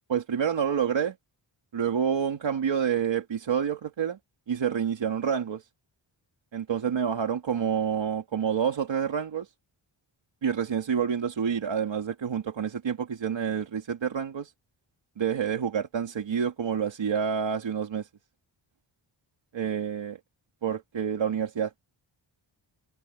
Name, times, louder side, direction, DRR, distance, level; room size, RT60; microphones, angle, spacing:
voice 1, 0.1-1.1 1.7-4.2 4.5-5.6 6.5-9.5 10.4-14.5 15.2-18.1 19.5-20.2 20.6-21.7, right 7 dB, 65° right, 2.6 m, -28 dB
wide cardioid pair, 155°, 48 cm